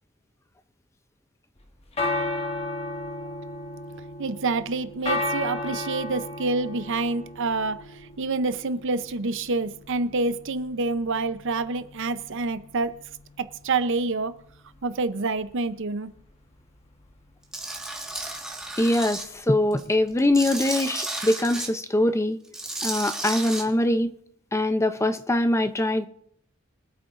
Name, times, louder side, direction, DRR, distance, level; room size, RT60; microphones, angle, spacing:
sound 1, 1.6-20.7, left 2 dB, 30° left, 1.3 m, -35 dB
voice 1, 4.2-13.0 13.4-14.3 14.8-16.1, right 3 dB, 65° right, 0.7 m, -27 dB
Tools, 17.5-19.2 19.7-21.7 22.4-23.6, right 2 dB, 5° right, 1.6 m, -33 dB
voice 2, 18.8-22.4 22.8-24.1 24.5-26.1, left 1 dB, 15° left, 0.5 m, -23 dB
24.0 x 8.6 x 2.5 m
head